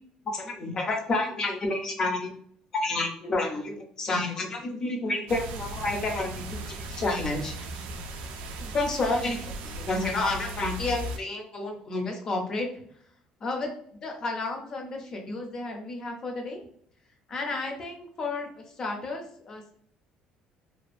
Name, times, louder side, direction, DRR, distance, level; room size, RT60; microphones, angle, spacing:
voice 1, 0.3-2.3 2.7-7.9 8.6-12.7 13.4-13.7 14.0-16.6 17.3-19.7, left 2 dB, 25° left, 2 dB, 0.4 m, -30 dB
sound 1, 5.3-11.2, right 2 dB, 90° right, 0.3 m, -37 dB
2.4 x 2.3 x 2.3 m, 0.63 s
cardioid pair, 180°, 2 cm